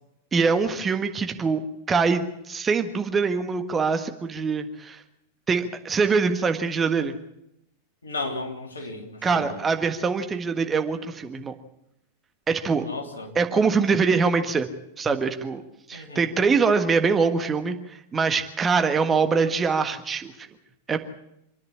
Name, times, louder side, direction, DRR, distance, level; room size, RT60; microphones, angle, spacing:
voice 1, 0.3-1.6 1.9-5.0 5.5-7.1 9.2-11.5 12.5-12.9 13.3-14.7 15.0-15.6 15.9-20.3 20.9-21.0, right 5 dB, 20° right, 7 dB, 1.6 m, -23 dB
voice 2, 8.0-9.6 12.8-13.4 15.9-16.3, left 2 dB, 75° left, 3 dB, 3.3 m, -34 dB
26.5 x 10.5 x 9.8 m, 0.80 s
figure-of-eight pair, 90°, 0 cm